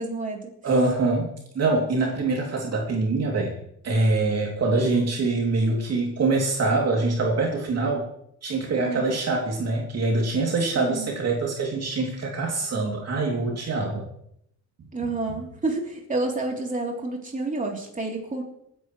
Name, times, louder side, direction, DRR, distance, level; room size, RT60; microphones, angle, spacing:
voice 1, 0.0-0.5 8.8-9.0 10.7-11.2 14.9-18.4, right 2 dB, 25° right, 0 dB, 3.5 m, -29 dB
voice 2, 0.6-3.5 3.8-8.1 8.4-14.1, right 3 dB, 55° right, 0 dB, 2.9 m, -24 dB
26.0 x 10.5 x 3.2 m, 0.74 s
cardioid pair, 90°, 30 cm